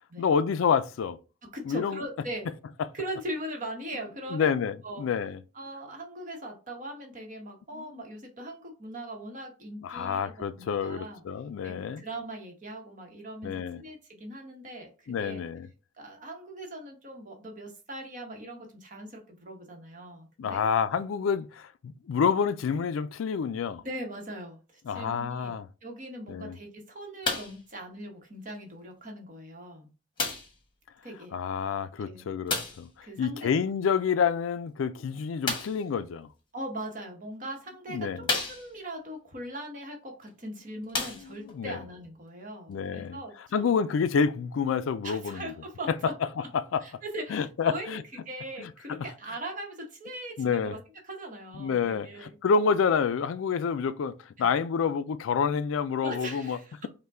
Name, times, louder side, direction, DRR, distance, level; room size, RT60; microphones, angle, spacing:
voice 1, 0.2-1.2 1.7-2.0 4.3-5.4 9.8-12.0 13.4-13.8 15.1-15.7 20.4-23.8 24.9-25.7 26.3-26.6 31.3-36.3 37.9-38.3 41.2-41.8 42.7-43.2 43.5-45.4 46.5-46.8 47.3-48.0 48.6-49.0 50.4-50.8 51.6-56.6, left 6 dB, 85° left, 0.4 m, -28 dB
voice 2, 1.4-2.5 2.9-4.6 4.8-5.1 5.5-11.2 11.6-15.4 16.0-20.6 23.8-29.9 31.0-31.4 32.0-32.3 33.0-33.5 36.5-43.8 45.0-46.1 46.4-46.5 46.8-48.0 48.2-50.8 51.0-52.4 54.4-54.5 56.0-56.9, right 1 dB, 40° right, 1.2 m, -40 dB
sound 1, 27.2-27.6 28.5-28.6 30.2-30.6 32.5-32.9 35.4-35.9 36.8-36.9 37.5-37.6 38.2-38.9 40.2-40.3 40.8-41.6 42.4-42.5, left 3 dB, 25° left, 1.0 m, -31 dB
5.4 x 2.2 x 3.5 m
head